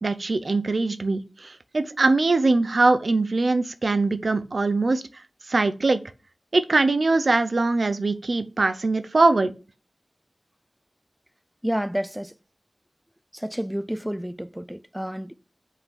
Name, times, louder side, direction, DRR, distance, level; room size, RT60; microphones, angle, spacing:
voice 1, 0.0-5.0 5.5-6.0 6.5-9.5, right 3 dB, 70° right, 0.6 m, -22 dB
voice 2, 11.6-12.3 13.3-15.3, equal, 10° right, 0.5 m, -30 dB
5.5 x 5.4 x 6.1 m
wide cardioid pair, 55°, 0 cm